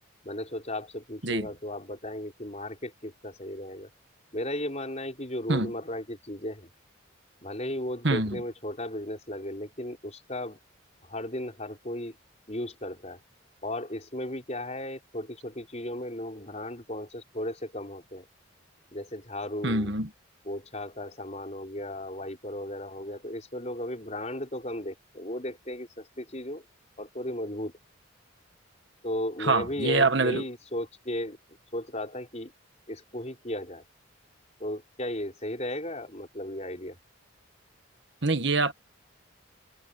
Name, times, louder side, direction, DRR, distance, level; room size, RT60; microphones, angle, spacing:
voice 1, 0.2-3.9 4.3-6.7 7.4-10.6 11.1-12.2 12.5-13.2 13.6-18.3 18.9-19.9 20.5-26.6 27.0-27.7 29.0-31.4 31.7-32.5 32.9-33.8 34.6-37.0, left 1 dB, 35° left, 5.8 m, -35 dB
voice 2, 8.0-8.4 19.6-20.1 29.4-30.4 38.2-38.7, right 3 dB, 55° right, 1.5 m, -25 dB
head